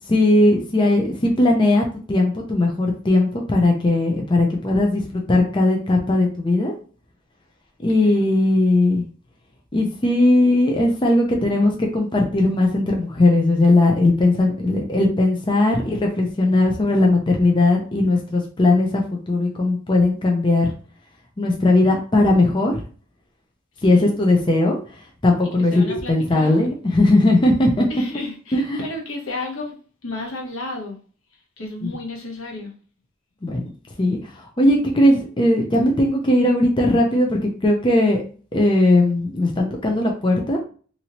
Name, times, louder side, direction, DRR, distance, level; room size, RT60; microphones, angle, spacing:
voice 1, 0.1-6.7 7.8-9.0 9.7-20.7 21.4-22.8 23.8-24.8 25.2-27.9 28.5-28.8 31.8-31.9 33.4-33.6 34.0-38.2 38.5-40.6, left 2 dB, 25° left, 1 dB, 0.4 m, -18 dB
voice 2, 25.6-26.6 27.9-29.8 30.0-31.0 31.6-32.7, left 2 dB, 80° left, 0 dB, 0.9 m, -32 dB
2.8 x 2.6 x 2.9 m, 0.41 s
head